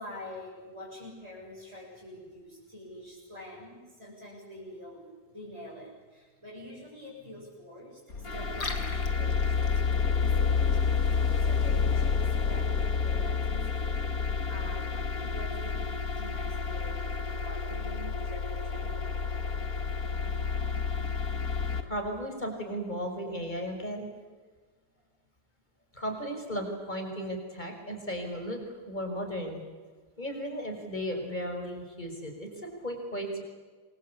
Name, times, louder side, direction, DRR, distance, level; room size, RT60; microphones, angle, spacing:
voice 1, 0.0-19.2, left 1 dB, 15° right, -6 dB, 7.7 m, -46 dB
sound 1, 8.1-21.8, left 5 dB, 50° left, 2.3 m, -29 dB
Liquid, 8.4-13.4, left 4 dB, 80° left, 3.5 m, -45 dB
voice 2, 21.8-24.1 25.9-29.6 30.2-32.5 32.8-33.4, equal, 20° left, 4 dB, 6.0 m, -35 dB
28.5 x 23.5 x 8.6 m, 1.4 s
omnidirectional pair, 2.0 m